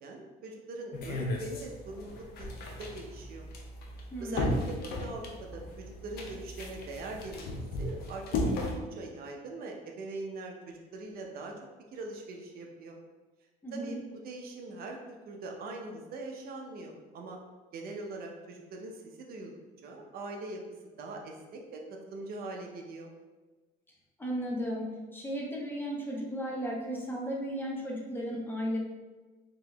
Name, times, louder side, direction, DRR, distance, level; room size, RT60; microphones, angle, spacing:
voice 1, 0.0-2.5 2.8-3.5 4.2-8.2 8.6-11.5 11.9-13.0 13.7-14.0 14.2-17.4 17.7-19.5 19.8-20.6 21.0-23.1, right 2 dB, 60° right, 1 dB, 0.6 m, -42 dB
sound 1, 0.9-8.8, left 1 dB, 65° left, 0.7 m, -35 dB
voice 2, 4.1-4.5 13.6-14.0 24.2-28.8, equal, 10° left, -3 dB, 0.8 m, -35 dB
3.7 x 2.9 x 3.3 m, 1.3 s
cardioid pair, 120°, 17 cm